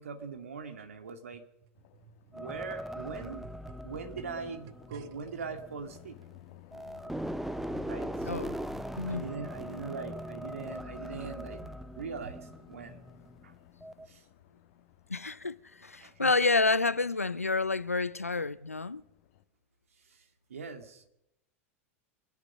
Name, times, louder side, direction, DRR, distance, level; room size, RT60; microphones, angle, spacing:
voice 1, 0.0-1.5 2.3-3.5 3.8-6.2 7.9-8.6 9.1-13.1 13.4-13.5 14.1-14.2 16.0-16.3 20.1-20.2 20.5-21.1, right 5 dB, 75° right, 2.1 m, -41 dB
sound 1, 1.0-5.5 6.2-6.3, right 7 dB, 50° right, 0.9 m, -54 dB
sound 2, 1.7-19.4, left 13 dB, 55° left, 1.4 m, -55 dB
sound 3, 2.3-6.4 6.7-13.4 13.8-14.1, equal, 5° right, 0.6 m, -40 dB
voice 2, 9.0-9.3 15.1-19.0, left 3 dB, 90° left, 0.5 m, -29 dB
25.5 x 8.8 x 6.4 m
figure-of-eight pair, 85°, 8 cm